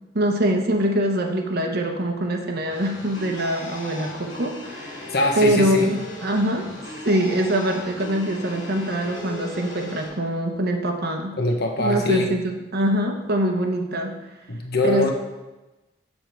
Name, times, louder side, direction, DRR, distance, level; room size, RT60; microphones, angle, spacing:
voice 1, 0.1-11.3 11.8-14.1 14.8-15.1, right 1 dB, 55° right, 3 dB, 1.0 m, -24 dB
sound 1, 2.7-10.1, left 2 dB, 85° left, 2.1 m, -37 dB
voice 2, 5.1-5.9 11.4-12.3 14.5-15.1, left 2 dB, 60° left, 2 dB, 1.2 m, -22 dB
7.1 x 6.7 x 4.5 m, 1.1 s
head